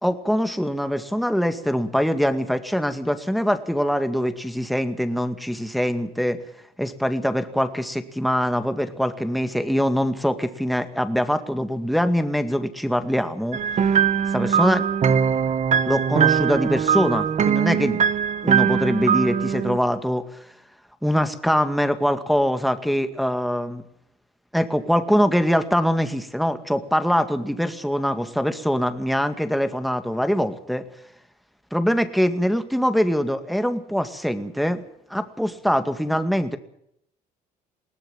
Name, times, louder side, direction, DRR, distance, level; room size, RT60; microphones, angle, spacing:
voice 1, 0.0-6.4 6.8-13.6 14.3-14.8 15.9-18.0 18.4-20.5 21.0-23.8 24.5-30.9 31.7-34.8 35.1-36.6, equal, ahead, 8 dB, 2.1 m, -23 dB
sound 1, 13.5-19.8, right 7 dB, 45° right, 1.6 m, -21 dB
21.0 x 18.0 x 7.5 m, 0.74 s
cardioid pair, 110°, 17 cm